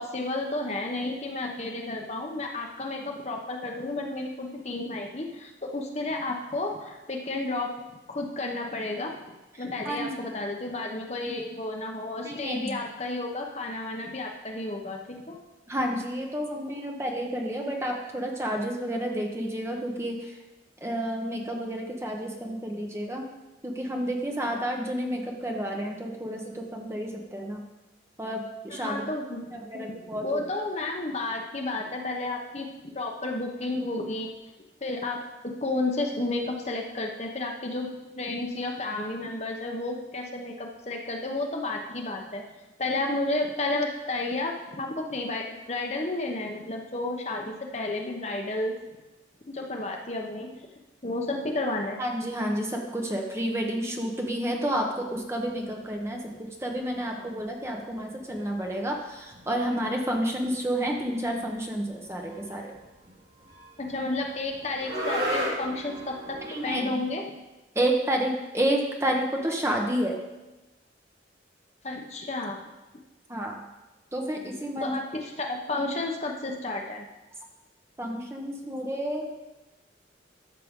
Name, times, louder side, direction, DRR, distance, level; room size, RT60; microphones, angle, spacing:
voice 1, 0.0-7.7 8.1-9.2 9.6-15.4 28.7-29.5 29.7-34.3 34.8-35.2 35.4-37.9 38.2-42.4 42.8-48.7 49.5-50.5 51.0-52.0 63.8-66.4 66.6-67.2 71.8-72.6 74.8-77.1, left 2 dB, 35° left, 1 dB, 0.9 m, -32 dB
voice 2, 12.2-12.8 15.7-20.3 20.8-23.2 23.6-27.6 28.2-29.1 29.5-30.4 52.0-62.7 66.5-67.0 67.7-70.2 73.3-73.6 74.1-74.9 78.0-79.3, right 1 dB, 15° right, 1 dB, 1.0 m, -30 dB
sound 1, 55.1-56.0 56.2-57.1 57.4-57.5 57.8-57.9 58.2-66.8, equal, 60° right, 2.8 m, -36 dB
13.0 x 6.7 x 3.7 m, 1.1 s
head